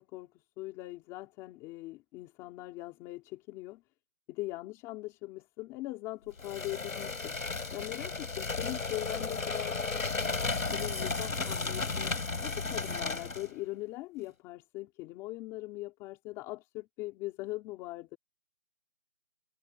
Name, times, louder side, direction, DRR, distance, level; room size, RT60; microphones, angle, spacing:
voice 1, 0.0-3.8 4.3-7.4 7.7-9.8 10.7-12.2 12.4-18.2, left 18 dB, 5° left, 4.4 m, -41 dB
sound 1, 6.4-13.5, left 4 dB, 80° left, 6.4 m, -34 dB
hypercardioid pair, 180°, 40 cm